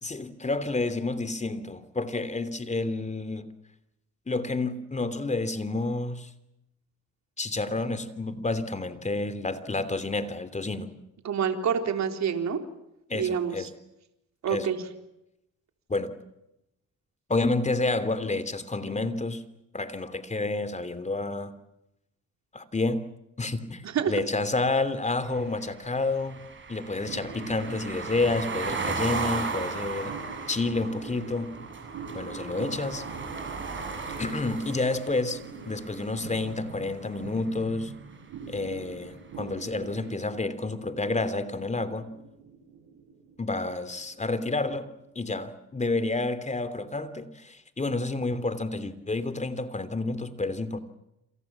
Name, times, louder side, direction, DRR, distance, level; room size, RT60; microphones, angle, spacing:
voice 1, 0.0-3.5 4.3-6.3 7.4-10.9 13.1-13.7 14.5-14.7 15.9-16.1 17.3-19.4 19.7-21.5 22.5-23.0 23.4-26.4 26.7-30.1 30.5-31.5 32.1-33.0 34.2-37.9 38.5-42.1 43.4-44.9 45.1-50.8, left 3 dB, 25° left, 12 dB, 3.0 m, -29 dB
voice 2, 11.2-12.6 13.1-13.7 14.4-14.8 23.8-24.1, right 7 dB, 65° right, 6 dB, 3.9 m, -27 dB
sound 1, 25.2-37.3, right 4 dB, 40° right, 7.9 m, -36 dB
sound 2, 27.0-45.8, right 5 dB, 80° right, 5.2 m, -45 dB
28.5 x 27.5 x 7.3 m, 0.86 s
cardioid pair, 90°, 30 cm